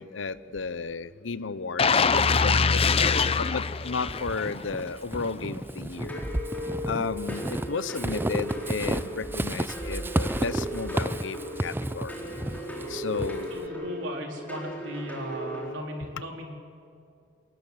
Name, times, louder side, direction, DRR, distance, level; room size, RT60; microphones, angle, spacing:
voice 1, 0.0-6.2 6.9-12.3 12.9-13.5, left 4 dB, 85° left, 16 dB, 0.8 m, -33 dB
sound 1, 1.8-4.7 5.1-5.3, left 5 dB, 30° left, 0.6 m, -23 dB
Walk footsteps / Squeak, 4.1-13.7, right 1 dB, 10° right, 0.5 m, -32 dB
sound 2, 6.1-15.7, equal, 10° left, 4.4 m, -37 dB
voice 2, 12.4-12.7 13.5-16.5, equal, 90° right, 1 dB, 4.1 m, -37 dB
27.0 x 19.5 x 8.0 m, 2.5 s
head